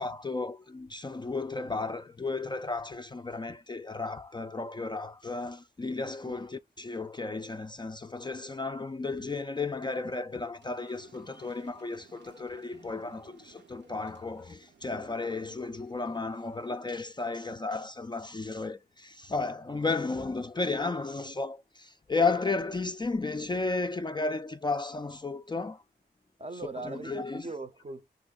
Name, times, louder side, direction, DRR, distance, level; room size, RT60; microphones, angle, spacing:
voice 1, 0.0-25.8 26.8-27.5, left 3 dB, 25° left, 0.3 m, -33 dB
sound 1, 10.6-16.8, right 5 dB, 75° right, 0.7 m, -58 dB
voice 2, 26.4-28.1, right 3 dB, 35° right, 0.6 m, -40 dB
4.2 x 3.0 x 2.4 m
wide cardioid pair, 90°, 18 cm